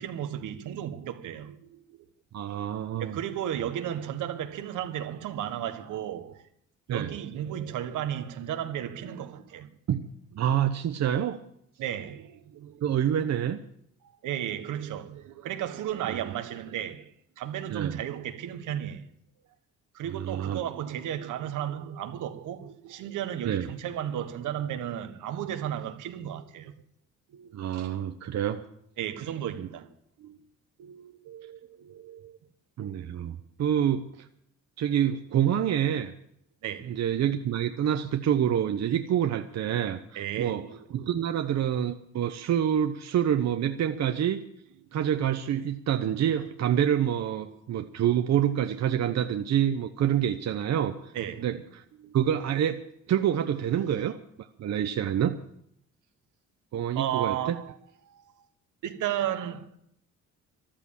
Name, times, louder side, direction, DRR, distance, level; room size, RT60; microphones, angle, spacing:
voice 1, 0.0-2.0 3.0-6.4 6.9-9.7 11.8-12.9 14.2-19.1 19.9-26.7 27.3-27.6 29.0-29.9 30.2-30.4 30.8-32.4 36.6-37.0 40.1-41.0 47.2-47.3 51.1-51.5 52.0-52.2 56.9-57.7 58.0-58.2 58.8-59.7, right 10 dB, 80° right, 1.5 m, -34 dB
voice 2, 2.3-3.2 6.9-7.1 9.9-10.1 10.3-11.4 12.8-13.6 16.1-16.2 17.7-18.0 20.1-20.6 23.4-23.7 27.5-28.6 29.6-29.7 32.8-34.3 34.8-36.1 36.9-40.6 40.9-44.4 44.9-51.1 51.4-51.8 52.1-52.8 53.1-54.2 54.6-55.4 56.7-57.6, right 9 dB, 60° right, 1.0 m, -27 dB
14.0 x 12.0 x 7.3 m
cardioid pair, 90°, 30 cm